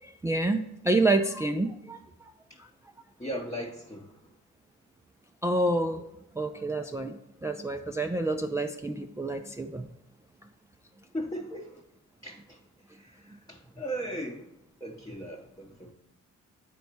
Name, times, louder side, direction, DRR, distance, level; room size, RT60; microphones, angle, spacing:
voice 1, 0.0-2.0 5.4-6.0 6.4-9.9, right 2 dB, 10° right, 5 dB, 0.4 m, -28 dB
voice 2, 3.2-4.2 11.1-11.8 12.2-12.6 12.9-14.5 14.8-15.9, equal, 15° left, -1 dB, 0.8 m, -37 dB
9.2 x 4.1 x 4.4 m, 0.87 s
cardioid pair, 90°, 30 cm